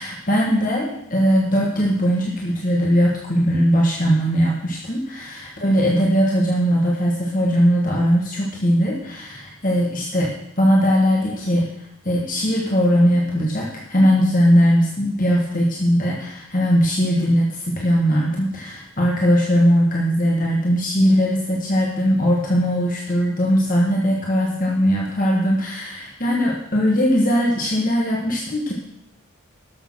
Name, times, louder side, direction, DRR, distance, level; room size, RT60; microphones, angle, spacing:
voice 1, 0.0-11.7 12.0-28.7, equal, 40° left, -2 dB, 1.7 m, -19 dB
12.0 x 6.7 x 6.3 m, 0.77 s
head